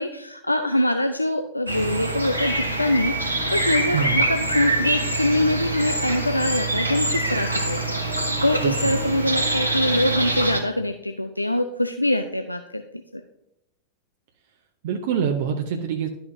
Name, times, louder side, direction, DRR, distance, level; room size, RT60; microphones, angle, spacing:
voice 1, 0.0-12.8, left 1 dB, 85° left, 7 dB, 0.4 m, -24 dB
sound 1, 1.7-10.6, right 2 dB, 85° right, 1.6 m, -25 dB
voice 2, 3.9-4.2 8.6-9.0 14.8-16.1, right 7 dB, 55° right, 3 dB, 0.7 m, -25 dB
12.0 x 5.7 x 2.7 m, 0.84 s
figure-of-eight pair, 90°, 0 cm